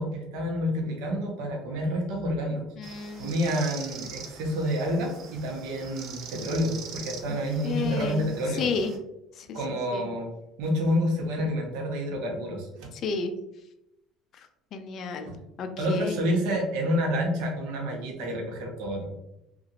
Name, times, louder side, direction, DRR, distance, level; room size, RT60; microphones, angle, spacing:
voice 1, 0.0-2.7 3.2-8.6 9.5-10.3 10.6-12.9 15.2-15.4 15.8-19.1, equal, 80° right, 0 dB, 0.8 m, -28 dB
voice 2, 2.8-3.4 7.3-7.4 7.6-9.0 9.4-10.1 12.9-13.3 14.7-15.3 15.6-16.2, left 4 dB, 55° left, 7 dB, 0.4 m, -32 dB
sound 1, 2.8-9.0, right 6 dB, 60° right, 0.5 m, -43 dB
2.8 x 2.4 x 2.8 m, 0.86 s
supercardioid pair, 100°, 0 cm